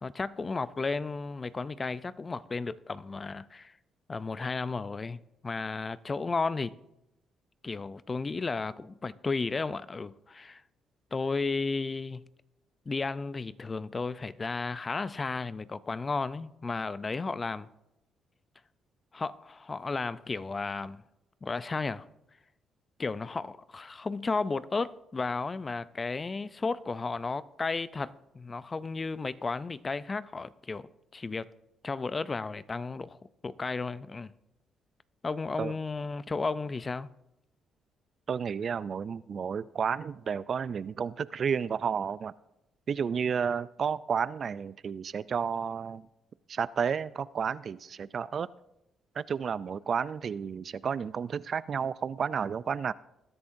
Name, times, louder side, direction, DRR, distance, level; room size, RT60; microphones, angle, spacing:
voice 1, 0.0-3.7 4.1-6.7 7.6-10.6 11.1-12.3 12.9-17.7 19.1-21.0 21.4-22.0 23.0-30.9 31.1-31.5 31.8-33.2 33.4-34.3 35.2-37.1, left 4 dB, 30° left, 0.4 m, -33 dB
voice 2, 38.3-42.3 42.9-46.1 46.5-48.5 49.2-52.9, right 6 dB, 50° right, 0.3 m, -31 dB
20.0 x 10.5 x 2.6 m
cardioid pair, 90°, 0 cm